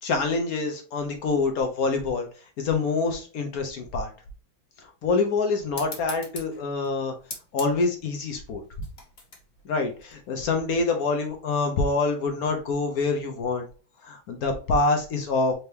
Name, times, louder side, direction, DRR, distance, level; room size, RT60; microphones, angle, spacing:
voice 1, 0.0-2.3 2.6-4.1 4.8-7.1 7.5-8.6 9.6-13.6 14.0-15.5, left 3 dB, 60° left, 4 dB, 1.0 m, -26 dB
sound 1, 5.7-10.8, left 3 dB, 35° left, 1.3 m, -43 dB
4.5 x 2.8 x 3.3 m, 0.37 s
omnidirectional pair, 2.1 m